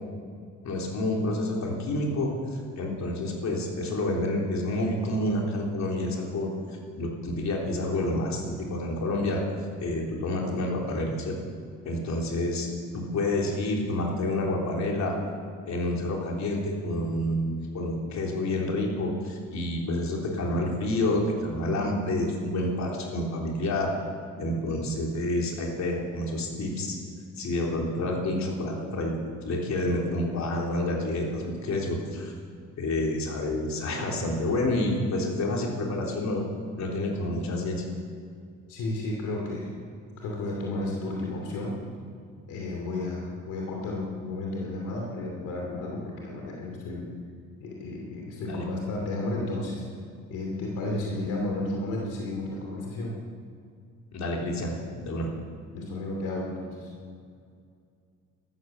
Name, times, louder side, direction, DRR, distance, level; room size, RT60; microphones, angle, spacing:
voice 1, 0.6-9.4 9.8-11.4 11.9-12.7 12.9-15.2 15.7-23.9 24.4-27.0 27.4-32.3 32.8-36.5 36.8-37.8 48.4-48.7 54.1-54.7 55.0-55.3, left 1 dB, 65° left, -1 dB, 3.6 m, -29 dB
voice 2, 38.7-39.7 40.2-41.8 42.5-47.1 47.6-49.8 50.3-53.2 55.7-56.9, left 2 dB, 90° left, -1 dB, 2.8 m, -32 dB
13.5 x 13.5 x 7.2 m, 2.3 s
cardioid pair, 90°, 30 cm